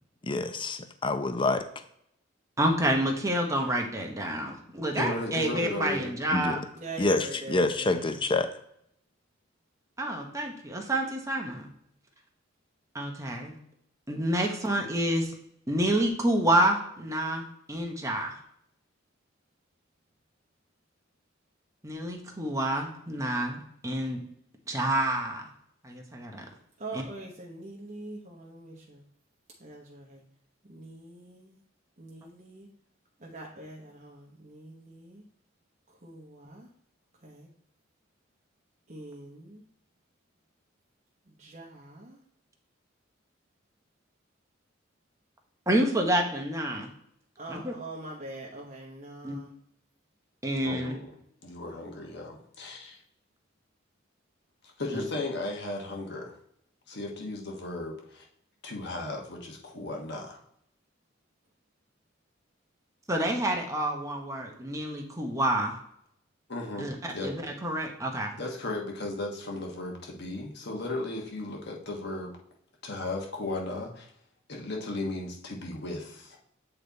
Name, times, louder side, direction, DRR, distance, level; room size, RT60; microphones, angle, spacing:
voice 1, 0.3-1.7 6.3-6.6 7.0-8.5, left 2 dB, 25° left, 9 dB, 0.6 m, -27 dB
voice 2, 2.6-6.6 10.0-11.7 12.9-13.5 14.1-15.3 15.7-18.4 21.8-24.2 24.7-25.4 25.8-26.4 26.9-27.0 45.7-46.9 47.5-47.7 49.2-49.4 50.4-51.0 54.9-55.0 63.1-65.8 66.8-68.3, right 1 dB, 15° right, 1 dB, 1.1 m, -28 dB
voice 3, 4.9-6.1 50.6-51.1 51.4-53.0 54.8-56.3 56.9-58.2 58.6-60.4 66.5-67.4 68.4-72.3 72.8-74.1 74.5-76.4, left 2 dB, 60° left, 0 dB, 1.3 m, -35 dB
voice 4, 6.8-8.1 26.8-29.0 29.6-30.2 30.7-31.6 32.0-32.7 33.2-35.2 36.0-36.7 37.2-37.5 38.9-39.6 41.4-42.2 47.4-49.5 54.9-55.1, right 2 dB, 40° right, -2 dB, 1.1 m, -43 dB
8.4 x 3.3 x 4.1 m, 0.71 s
head